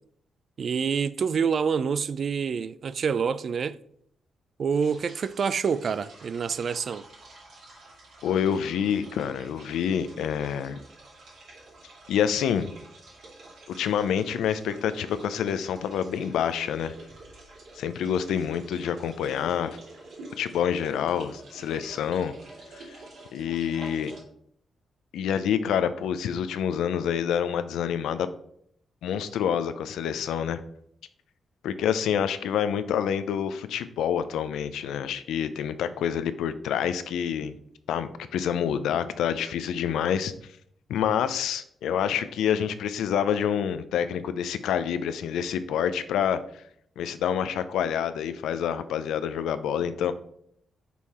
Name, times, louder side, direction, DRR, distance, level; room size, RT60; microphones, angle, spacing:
voice 1, 0.6-3.8 4.6-7.1, right 6 dB, 60° right, 0.3 m, -27 dB
sound 1, 4.7-24.2, right 2 dB, 80° right, 2.4 m, -48 dB
voice 2, 8.2-10.8 12.1-12.7 13.7-16.9 17.8-19.8 20.4-22.3 22.7-23.0 23.3-24.1 25.1-28.3 29.0-30.6 31.6-37.5 37.9-40.3 40.9-46.6 47.0-50.1, left 8 dB, 90° left, 0.4 m, -27 dB
5.4 x 4.7 x 4.2 m
cardioid pair, 70°, 0 cm